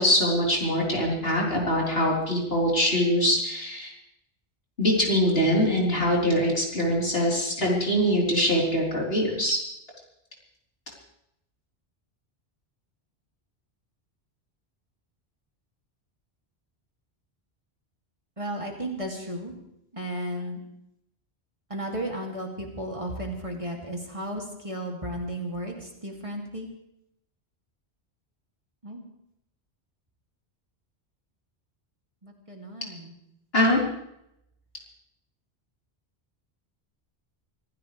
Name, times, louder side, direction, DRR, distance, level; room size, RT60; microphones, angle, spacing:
voice 1, 0.0-3.9 4.8-9.6 33.5-33.8, equal, 65° left, -3 dB, 4.5 m, -23 dB
voice 2, 18.4-19.5 19.9-20.6 21.7-26.7 28.8-29.0 32.2-33.1, right 1 dB, 30° right, 0 dB, 2.7 m, -34 dB
25.5 x 15.5 x 3.4 m, 0.79 s
omnidirectional pair, 1.1 m